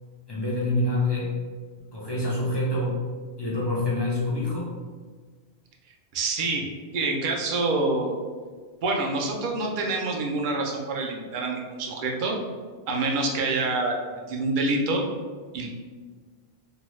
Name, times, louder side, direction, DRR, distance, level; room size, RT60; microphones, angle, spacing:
voice 1, 0.3-1.4 1.9-3.0 3.4-4.7, left 2 dB, 40° left, -6 dB, 0.4 m, -26 dB
voice 2, 6.1-6.7 6.9-8.2 8.8-12.4 12.9-15.0 15.5-15.7, right 3 dB, 60° right, 0 dB, 0.6 m, -26 dB
2.7 x 2.2 x 3.1 m, 1.5 s
omnidirectional pair, 1.1 m